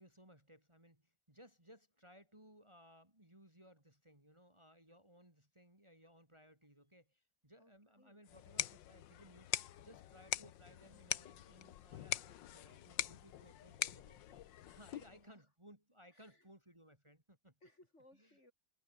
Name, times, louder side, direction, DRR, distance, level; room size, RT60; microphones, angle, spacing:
voice 1, 0.0-9.5 9.8-14.4 14.7-17.5 18.1-18.4, equal, 15° right, 4.3 m, -62 dB
voice 2, 7.6-8.2 15.0-15.5 16.1-16.5 17.6-18.5, left 1 dB, 35° left, 6.4 m, -66 dB
sound 1, 8.3-15.2, left 12 dB, 85° left, 1.6 m, -43 dB
omnidirectional pair, 2.0 m